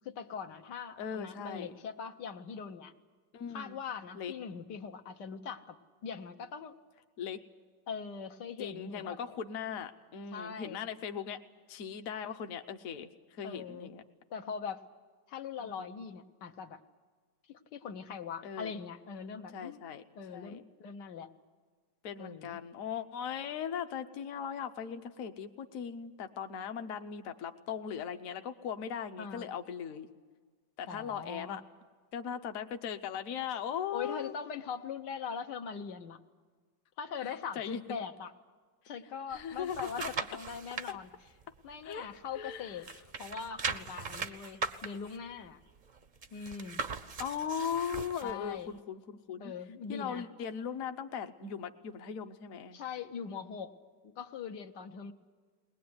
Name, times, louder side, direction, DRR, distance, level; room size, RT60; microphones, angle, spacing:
voice 1, 0.0-2.9 3.5-5.8 6.0-6.8 7.9-9.2 10.3-10.8 13.4-13.9 14.3-14.8 15.3-16.8 17.5-19.8 20.2-21.3 22.2-22.6 29.2-29.5 30.9-31.6 33.9-36.2 37.0-38.3 38.9-41.1 41.6-42.9 43.2-45.6 46.3-46.9 48.2-48.7 49.4-50.3 52.7-53.7 54.0-55.1, left 6 dB, 75° left, 6 dB, 1.6 m, -41 dB
voice 2, 1.0-1.7 3.3-3.7 4.1-4.3 7.2-7.4 8.6-11.4 11.7-14.0 15.6-15.8 18.4-18.7 19.5-20.0 20.3-20.6 22.0-30.1 30.8-31.6 32.1-34.3 37.5-37.8 39.3-39.9 40.9-41.0 41.8-42.1 42.3-42.8 47.2-49.5 49.9-52.8, left 7 dB, 55° left, 7 dB, 1.2 m, -39 dB
sound 1, 39.3-40.9 41.4-42.5 42.8-48.3 48.8-48.9, right 4 dB, 45° right, 0.6 m, -39 dB
21.0 x 20.0 x 9.5 m, 1.5 s
omnidirectional pair, 1.9 m